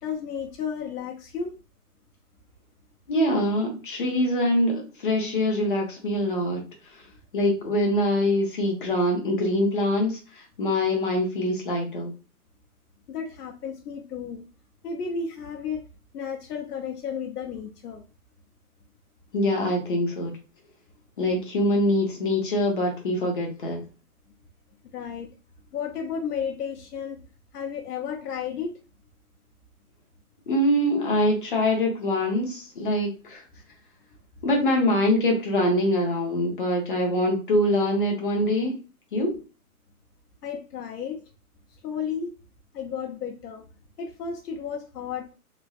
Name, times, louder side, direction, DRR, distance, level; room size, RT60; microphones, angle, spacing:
voice 1, 0.0-1.6 13.1-14.5 14.8-15.8 16.1-18.0 24.8-25.3 25.7-27.2 27.5-28.8 40.4-41.2 41.8-42.3 42.7-43.7 44.0-45.3, left 6 dB, 85° left, 1 dB, 0.7 m, -33 dB
voice 2, 3.1-6.6 7.3-10.2 10.6-12.1 19.3-20.3 21.2-23.8 30.5-33.4 34.4-38.8 39.1-39.4, left 1 dB, 35° left, 1 dB, 0.7 m, -24 dB
3.1 x 2.5 x 2.3 m, 0.32 s
hypercardioid pair, 175°, 45 cm